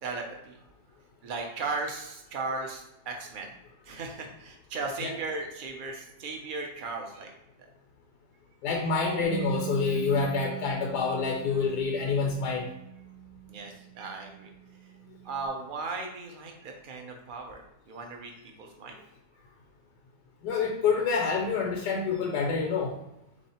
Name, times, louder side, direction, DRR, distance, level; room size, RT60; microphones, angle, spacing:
voice 1, 0.0-0.6 1.2-3.5 3.8-7.3 10.4-10.6 13.5-14.5 15.2-19.0, right 3 dB, 70° right, 2 dB, 0.5 m, -37 dB
voice 2, 8.6-12.7 20.4-23.0, left 5 dB, 80° left, 0 dB, 1.2 m, -27 dB
Bass guitar, 9.2-15.5, right 12 dB, 65° left, 0.8 m, -41 dB
3.7 x 3.2 x 4.1 m, 0.87 s
omnidirectional pair, 1.7 m